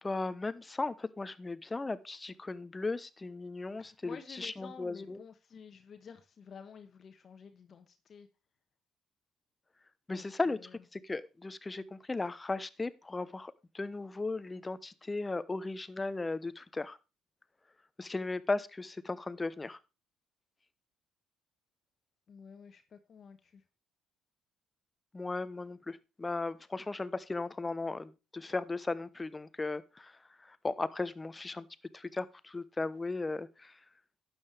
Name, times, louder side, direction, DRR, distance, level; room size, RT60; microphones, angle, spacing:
voice 1, 0.0-5.2 10.1-10.6 10.9-17.0 18.0-19.8 25.1-30.1 30.5-31.7 31.9-33.7, left 3 dB, 20° left, 16 dB, 0.9 m, -36 dB
voice 2, 3.8-8.3 10.1-10.8 22.3-23.6, left 6 dB, 45° left, 7 dB, 1.2 m, -51 dB
12.0 x 8.9 x 3.4 m, 0.29 s
hypercardioid pair, 55°, 0 cm